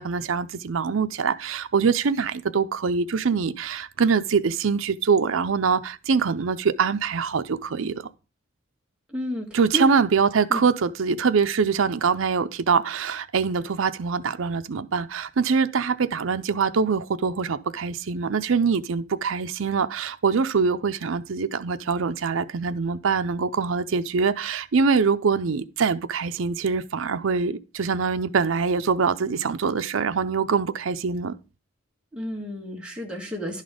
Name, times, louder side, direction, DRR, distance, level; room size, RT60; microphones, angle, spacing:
voice 1, 0.0-8.1 9.5-31.3, right 5 dB, 80° right, 0.5 m, -24 dB
voice 2, 9.1-9.5 9.7-9.9 10.5-10.6 32.1-33.6, equal, 5° right, 1.7 m, -31 dB
11.0 x 4.1 x 5.0 m
head